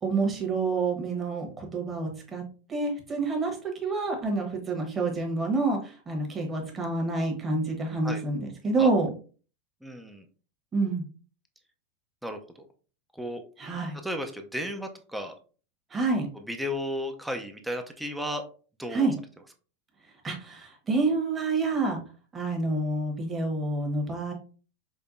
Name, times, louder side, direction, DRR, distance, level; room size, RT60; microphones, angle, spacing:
voice 1, 0.0-2.4 2.7-9.1 10.7-11.0 13.6-14.0 15.9-16.3 18.9-19.1 20.2-22.0 22.3-24.3, right 3 dB, 20° right, 1 dB, 1.1 m, -28 dB
voice 2, 9.8-10.2 12.2-12.7 13.1-13.4 14.0-15.3 16.5-18.4 18.8-19.1, equal, 5° right, 4 dB, 0.5 m, -34 dB
5.2 x 2.2 x 2.5 m, 0.38 s
supercardioid pair, 130°, 0 cm